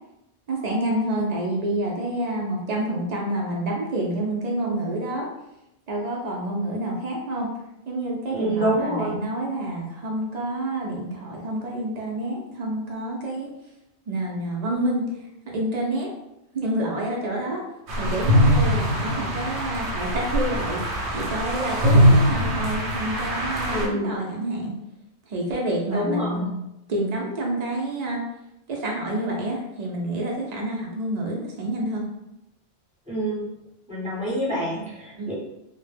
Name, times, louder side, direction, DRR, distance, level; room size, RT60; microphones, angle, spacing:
voice 1, 0.5-5.3 5.9-7.5 7.9-13.5 14.1-15.1 15.5-16.1 16.5-17.6 18.0-20.8 21.1-24.7 25.3-26.5 26.9-28.2 28.7-32.1 35.1-35.3, right 1 dB, 60° right, -1 dB, 0.4 m, -28 dB
voice 2, 8.3-9.2 23.7-24.1 25.9-26.4 33.1-33.4 33.9-35.3, right 1 dB, 10° right, -7 dB, 0.6 m, -26 dB
sound 1, 17.9-23.9, equal, 75° right, 0.9 m, -22 dB
2.1 x 2.0 x 3.2 m, 0.87 s
omnidirectional pair, 1.2 m